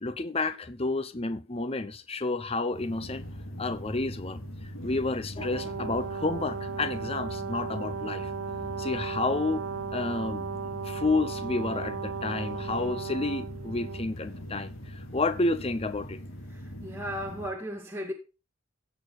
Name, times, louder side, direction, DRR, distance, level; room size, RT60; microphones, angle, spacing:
voice 1, 0.0-3.3 3.6-8.3 8.8-10.5 10.8-16.2, left 3 dB, 30° left, 0.8 m, -30 dB
sound 1, 2.7-17.5, equal, 80° left, 3.4 m, -41 dB
Brass instrument, 5.4-14.1, right 6 dB, 70° right, 0.5 m, -36 dB
voice 2, 16.8-18.1, equal, 10° right, 2.3 m, -35 dB
16.0 x 6.8 x 4.1 m
head